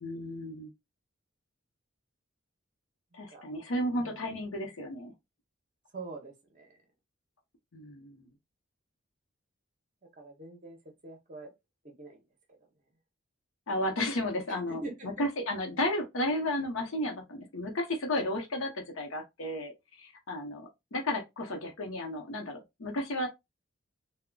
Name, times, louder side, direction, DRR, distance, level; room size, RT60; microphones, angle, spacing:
voice 1, 0.0-0.7 3.1-5.1 7.7-8.3 13.7-23.3, left 1 dB, 75° left, 0.8 m, -33 dB
voice 2, 3.1-3.4 4.0-4.2 5.9-6.8 10.2-10.8 11.0-11.5 12.0-12.2 14.7-15.3, right 3 dB, 35° right, 0.7 m, -44 dB
3.7 x 2.1 x 2.2 m
head